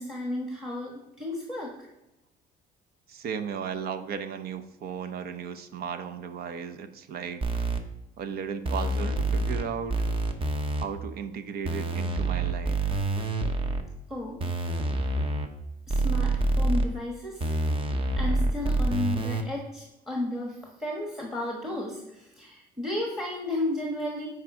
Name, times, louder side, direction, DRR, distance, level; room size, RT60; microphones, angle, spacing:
voice 1, 0.0-1.9 14.1-14.4 15.9-17.5 18.2-24.3, left 1 dB, ahead, 0 dB, 1.3 m, -33 dB
voice 2, 3.1-7.7 8.2-9.9 10.8-12.9, right 7 dB, 65° right, 9 dB, 0.8 m, -35 dB
sound 1, 7.4-7.8 8.6-9.6 9.9-10.8 11.6-13.8 14.4-15.5 15.9-16.9 17.4-19.4, right 2 dB, 35° right, 0.9 m, -27 dB
8.6 x 4.8 x 4.9 m, 0.94 s
cardioid pair, 110°, 17 cm